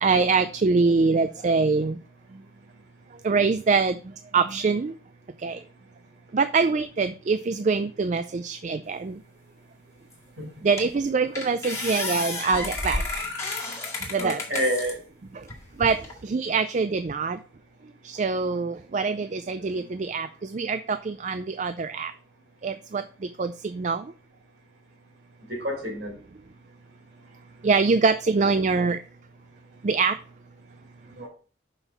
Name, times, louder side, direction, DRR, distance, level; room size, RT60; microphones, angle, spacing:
voice 1, 0.0-2.0 3.2-4.0 4.3-4.9 5.4-5.6 6.3-9.2 10.6-13.0 14.1-14.4 15.8-17.4 18.0-22.1 22.6-23.0 23.4-24.1 27.6-29.0 29.8-30.2, right 4 dB, 40° right, 11 dB, 0.4 m, -24 dB
sound 1, 10.1-10.2 10.8-11.0 11.3-14.9 15.5-16.1, left 3 dB, 15° left, 1.9 m, -31 dB
voice 2, 14.1-15.0 19.7-19.9 25.5-26.1 31.2-31.3, equal, 55° right, 0 dB, 4.1 m, -29 dB
6.2 x 5.6 x 5.9 m, 0.39 s
head